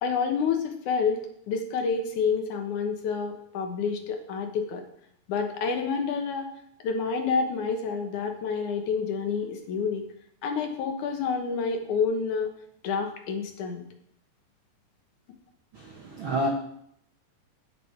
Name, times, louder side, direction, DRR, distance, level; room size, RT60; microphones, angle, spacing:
voice 1, 0.0-4.8 5.3-6.5 6.8-10.0 10.4-12.5 12.8-13.8, left 5 dB, 65° left, 4 dB, 2.4 m, -28 dB
voice 2, 15.7-16.5, equal, 85° right, 2 dB, 1.1 m, -29 dB
16.0 x 6.1 x 4.6 m, 0.70 s
omnidirectional pair, 4.1 m